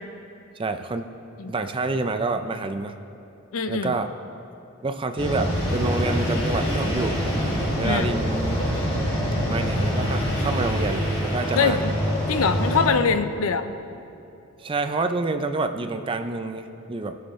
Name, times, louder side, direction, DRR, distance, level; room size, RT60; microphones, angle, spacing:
voice 1, 0.6-1.1 1.5-3.0 3.7-4.1 4.8-7.2 7.8-8.6 9.4-11.8 14.6-17.2, right 3 dB, 25° right, 7 dB, 0.4 m, -28 dB
voice 2, 3.5-3.9 7.8-8.1 11.6-11.9 12.3-13.7, left 5 dB, 85° left, 10 dB, 0.6 m, -23 dB
sound 1, 5.2-12.9, equal, 25° left, 2.2 m, -25 dB
19.5 x 6.6 x 3.2 m, 2.7 s
head